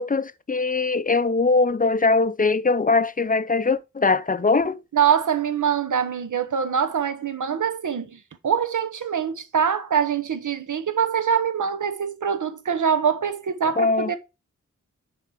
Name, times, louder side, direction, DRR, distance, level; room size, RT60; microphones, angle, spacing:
voice 1, 0.0-4.8 13.8-14.2, left 3 dB, 30° left, 0.4 m, -21 dB
voice 2, 4.9-14.2, right 7 dB, 80° right, 0.9 m, -24 dB
6.6 x 4.4 x 4.8 m
wide cardioid pair, 60°, 30 cm